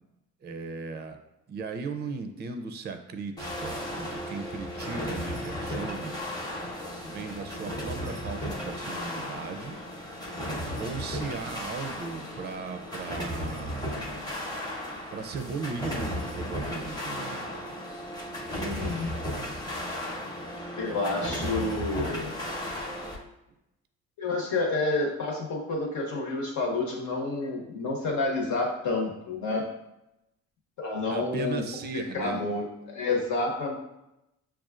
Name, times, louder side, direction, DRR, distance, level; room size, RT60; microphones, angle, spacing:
voice 1, 0.4-1.2 1.5-6.1 7.0-9.8 10.8-14.0 15.1-17.6 31.1-32.4, right 4 dB, 35° right, 7 dB, 0.4 m, -37 dB
sound 1, 3.4-23.2, equal, 15° left, 0.8 m, -35 dB
voice 2, 18.5-19.1 20.8-22.3 24.2-29.7 30.8-31.6 32.1-33.8, left 2 dB, 75° left, -1 dB, 1.1 m, -29 dB
6.1 x 2.4 x 2.4 m, 0.89 s
cardioid pair, 90°, 30 cm